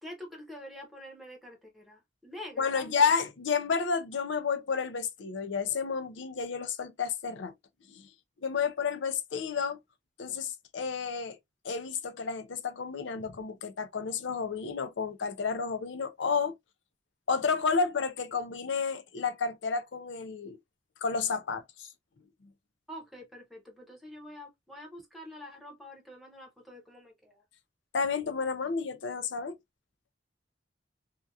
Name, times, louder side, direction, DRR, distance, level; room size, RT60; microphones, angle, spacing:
voice 1, 0.0-3.1 22.9-27.4, left 1 dB, ahead, 0.9 m, -46 dB
voice 2, 2.6-7.5 7.9-8.1 8.4-9.8 10.2-11.4 11.6-16.6 17.3-20.6 21.0-21.9 27.9-29.6, left 5 dB, 90° left, 0.5 m, -31 dB
2.8 x 2.4 x 2.3 m
head